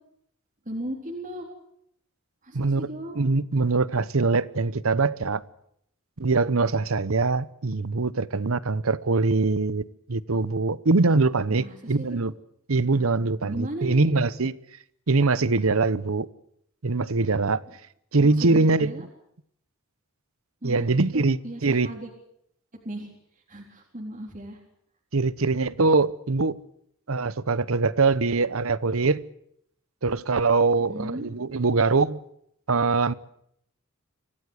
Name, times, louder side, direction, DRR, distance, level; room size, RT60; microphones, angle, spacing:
voice 1, 0.7-1.5 2.4-3.1 11.5-12.2 13.2-14.0 18.2-19.1 20.6-22.1 22.7-24.6 30.9-31.3, right 1 dB, 40° right, 3.8 m, -36 dB
voice 2, 2.5-2.9 3.2-5.4 6.2-12.3 12.7-14.6 15.1-16.3 16.8-17.6 18.1-18.9 20.6-21.9 25.1-26.6 27.1-29.2 30.0-32.2 32.7-33.1, right 3 dB, 75° right, 0.9 m, -23 dB
25.0 x 17.0 x 8.1 m
head